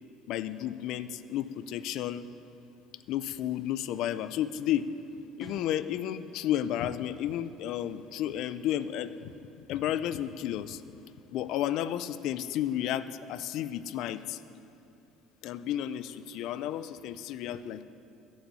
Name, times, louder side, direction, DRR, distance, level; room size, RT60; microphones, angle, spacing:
voice 1, 0.3-2.3 3.1-4.9 5.4-9.3 9.7-10.8 11.3-14.4 15.4-17.8, left 11 dB, 60° left, 14 dB, 0.5 m, -32 dB
sound 1, 5.4-5.9, right 2 dB, 5° right, 0.9 m, -51 dB
15.0 x 6.4 x 9.7 m, 2.7 s
cardioid pair, 150°, 0 cm